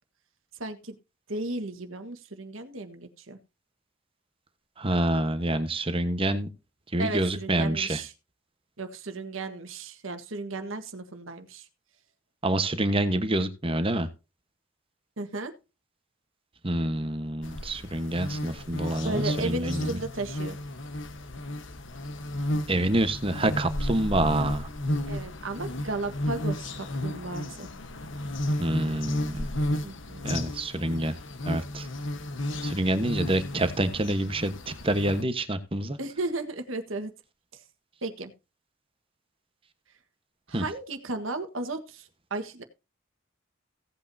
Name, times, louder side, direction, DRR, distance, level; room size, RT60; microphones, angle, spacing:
voice 1, 0.6-0.9 1.3-3.4 7.0-8.1 8.8-11.7 15.2-15.5 19.0-20.6 25.1-27.7 29.8-30.5 36.0-37.1 37.5-37.6 38.0-38.3 40.5-42.6, right 2 dB, 80° right, 7 dB, 1.5 m, -34 dB
voice 2, 4.8-6.5 6.9-8.0 12.4-14.1 16.6-20.0 22.7-24.7 28.6-29.5 30.2-31.2 31.5-31.9 32.6-36.0 40.5-40.6, right 1 dB, 25° right, 10 dB, 1.2 m, -27 dB
sound 1, 17.4-35.2, left 1 dB, 65° left, 1.2 m, -33 dB
16.5 x 8.3 x 2.7 m, 0.29 s
head